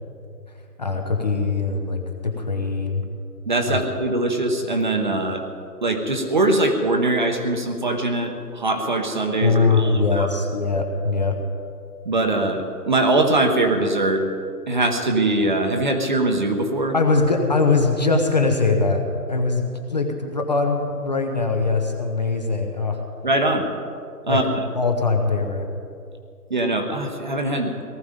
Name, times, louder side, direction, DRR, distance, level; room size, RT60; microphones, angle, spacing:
voice 1, 0.8-3.1 3.7-3.8 9.4-11.4 16.9-23.0 24.3-24.4 24.7-25.7, left 3 dB, 25° left, 3 dB, 0.9 m, -22 dB
voice 2, 3.5-5.5 5.8-10.3 12.0-14.2 14.7-16.9 23.2-23.6 24.2-24.4 26.5-27.9, right 2 dB, 30° right, 4 dB, 1.0 m, -22 dB
18.5 x 14.0 x 5.2 m, 2.4 s
hypercardioid pair, 165°, 48 cm